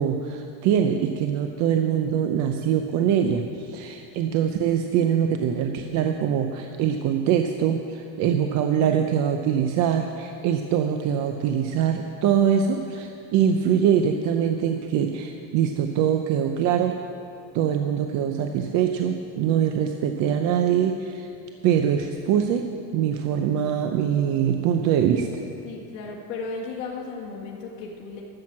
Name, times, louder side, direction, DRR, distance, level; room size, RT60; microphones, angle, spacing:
voice 1, 0.0-17.0 17.5-21.3 21.6-22.7 22.9-25.3, right 8 dB, 45° right, 5 dB, 0.6 m, -23 dB
voice 2, 25.6-28.2, left 4 dB, 60° left, -4 dB, 1.9 m, -35 dB
12.0 x 7.7 x 7.4 m, 2.5 s
cardioid pair, 155°, 40 cm